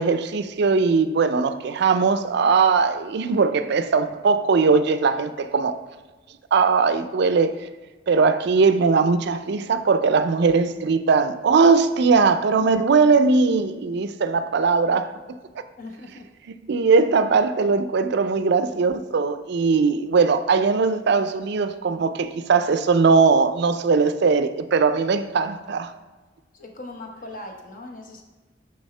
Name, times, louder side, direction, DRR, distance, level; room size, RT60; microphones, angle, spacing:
voice 1, 0.0-5.8 6.5-7.5 8.1-15.1 16.7-25.9, right 4 dB, 60° right, 0.4 m, -20 dB
voice 2, 15.8-16.3 26.5-28.2, left 2 dB, 45° left, 1.0 m, -39 dB
7.0 x 6.3 x 3.3 m
head